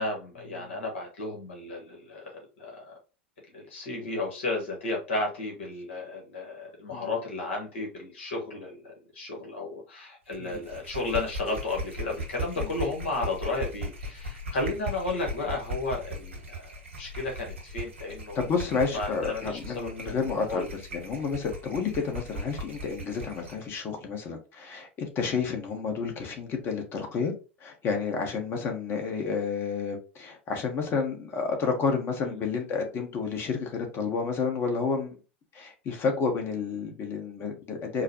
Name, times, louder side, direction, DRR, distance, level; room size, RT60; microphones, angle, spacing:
voice 1, 0.0-3.0 3.5-18.4 18.9-20.2 20.5-20.7 32.2-32.4, left 2 dB, 70° left, 1.5 m, -33 dB
sound 1, 10.3-23.7, equal, 80° right, 1.4 m, -38 dB
voice 2, 18.3-20.7 20.9-27.3 27.6-35.2 35.5-38.0, left 5 dB, 35° left, 1.2 m, -30 dB
4.6 x 2.2 x 3.0 m
figure-of-eight pair, 85°, 7 cm